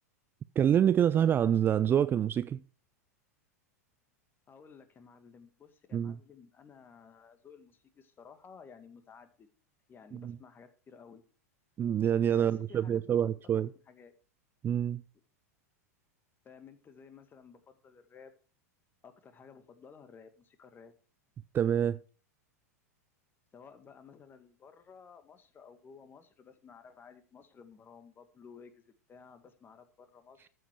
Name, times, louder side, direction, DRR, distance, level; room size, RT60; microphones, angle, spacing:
voice 1, 0.6-2.6 5.9-6.2 10.1-10.4 11.8-13.7 14.6-15.0 21.5-22.0, right 9 dB, 25° right, 0.5 m, -26 dB
voice 2, 4.5-9.5 9.9-11.2 12.3-14.1 16.4-18.3 19.0-20.9 23.5-30.5, left 6 dB, 25° left, 2.1 m, -55 dB
14.0 x 7.7 x 4.8 m
figure-of-eight pair, 95°, 9 cm